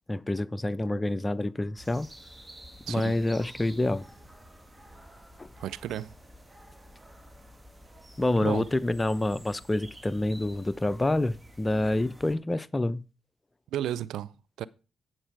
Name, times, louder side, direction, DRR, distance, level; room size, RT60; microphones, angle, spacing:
voice 1, 0.1-2.1 2.9-4.1 5.4-5.5 8.2-13.0, left 1 dB, 20° left, 0.6 m, -27 dB
sound 1, 1.8-12.4, equal, 20° right, 2.0 m, -50 dB
voice 2, 5.6-6.1 8.4-8.7 13.7-14.3 14.6-14.7, right 11 dB, 75° right, 0.4 m, -33 dB
8.9 x 7.3 x 4.7 m
hypercardioid pair, 40°, 0 cm